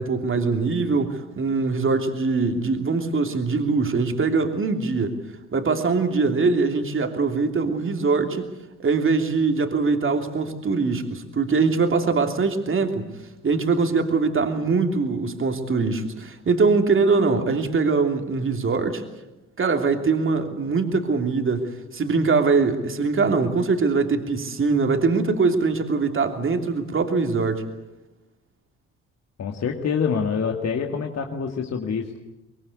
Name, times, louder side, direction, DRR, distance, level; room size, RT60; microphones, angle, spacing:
voice 1, 0.0-5.2 5.5-8.5 8.8-13.1 13.4-19.0 19.6-27.6, right 4 dB, 35° right, 5 dB, 3.1 m, -22 dB
voice 2, 29.4-32.2, left 6 dB, 45° left, 3 dB, 2.3 m, -26 dB
23.5 x 22.5 x 8.4 m, 0.98 s
hypercardioid pair, 50°, 35 cm